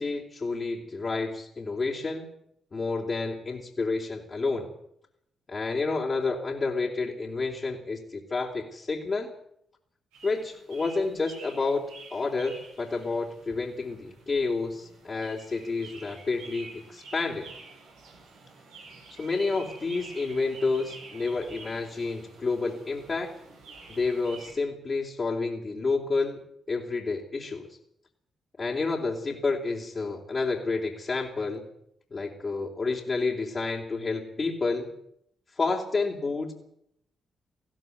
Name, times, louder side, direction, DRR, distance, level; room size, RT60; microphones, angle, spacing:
voice 1, 0.0-2.3 2.7-4.7 5.5-9.3 10.2-17.5 19.1-23.3 23.9-26.4 26.7-27.8 28.6-31.7 32.1-34.9 35.6-36.5, left 3 dB, 45° left, -2 dB, 3.6 m, -30 dB
sound 1, 10.1-24.5, right 3 dB, 85° right, 7.5 m, -49 dB
19.0 x 16.0 x 9.5 m, 0.73 s
hypercardioid pair, 40°, 0 cm